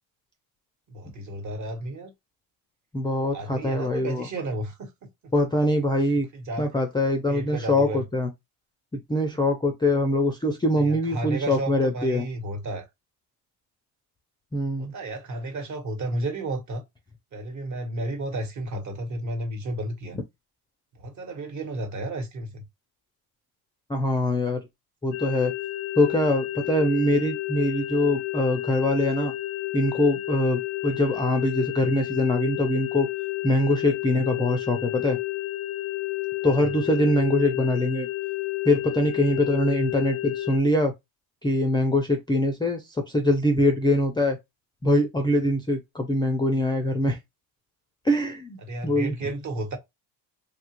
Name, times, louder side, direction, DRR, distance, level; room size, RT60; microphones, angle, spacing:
voice 1, 0.9-2.1 3.3-4.9 5.2-5.3 6.3-6.7 7.3-8.0 10.8-12.9 14.8-16.8 17.3-20.2 20.9-22.6 36.6-36.7 48.6-49.8, right 2 dB, 40° right, 1.2 m, -32 dB
voice 2, 2.9-4.3 5.3-6.3 6.6-8.3 8.9-12.2 14.5-14.9 23.9-24.6 25.0-25.5 26.0-29.3 29.7-33.1 33.4-35.2 36.4-38.1 38.6-40.9 41.4-44.4 44.8-47.2 48.0-49.1, left 1 dB, 10° left, 0.4 m, -23 dB
sound 1, 25.1-40.6, left 17 dB, 70° left, 0.5 m, -31 dB
2.9 x 2.4 x 2.9 m
supercardioid pair, 105°, 45 cm